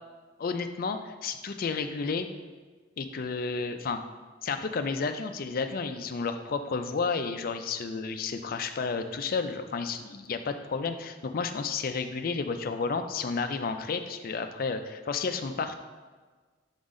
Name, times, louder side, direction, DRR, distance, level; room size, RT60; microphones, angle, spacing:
voice 1, 0.4-2.3 3.0-4.0 4.4-15.7, left 4 dB, 50° left, 7 dB, 0.4 m, -31 dB
7.1 x 4.0 x 3.7 m, 1.4 s
head